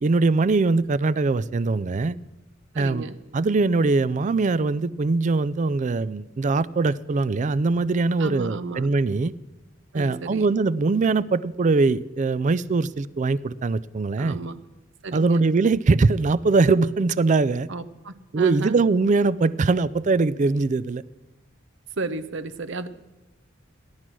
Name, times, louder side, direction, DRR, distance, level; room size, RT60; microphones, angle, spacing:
voice 1, 0.0-2.2 2.8-3.1 3.3-9.3 9.9-14.4 15.1-17.7 18.3-21.0, right 3 dB, 40° right, 19 dB, 0.4 m, -22 dB
voice 2, 2.7-3.2 8.2-8.9 9.9-10.5 14.2-14.5 15.0-15.4 17.7-18.8 22.0-22.9, right 3 dB, 65° right, 13 dB, 0.8 m, -33 dB
15.5 x 11.5 x 6.1 m, 1.1 s
head